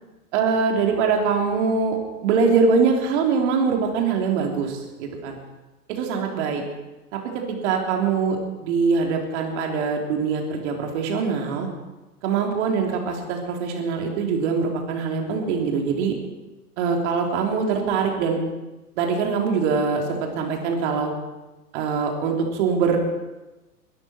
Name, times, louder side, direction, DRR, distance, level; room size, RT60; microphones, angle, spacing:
voice 1, 0.3-5.4 5.9-6.6 7.1-7.2 7.5-11.7 12.2-16.1 16.8-18.4 19.0-21.1 21.7-23.0, right 5 dB, 45° right, 2 dB, 3.4 m, -23 dB
22.0 x 13.0 x 4.5 m, 1.1 s
figure-of-eight pair, 105°, 46 cm